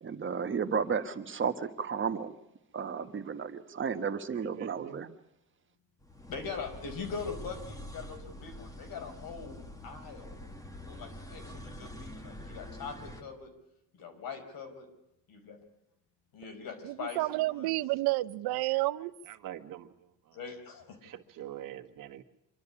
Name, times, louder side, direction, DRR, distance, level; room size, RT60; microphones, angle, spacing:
voice 1, 0.0-2.3 2.7-5.1, right 6 dB, 30° right, 8 dB, 1.4 m, -33 dB
voice 2, 4.3-5.1 18.7-18.8 19.3-19.9 20.2-20.4 21.0-22.2, right 12 dB, 60° right, 5 dB, 1.7 m, -45 dB
sound 1, 6.0-13.2, left 1 dB, 10° left, 2.1 m, -46 dB
voice 3, 6.3-10.4 10.9-13.5 13.9-14.9 15.3-15.6 16.3-17.8 20.3-21.0, left 5 dB, 65° left, 7 dB, 4.8 m, -42 dB
voice 4, 16.8-19.1, right 19 dB, 85° right, 16 dB, 0.8 m, -30 dB
26.0 x 12.5 x 9.9 m, 0.88 s
cardioid pair, 130°, 37 cm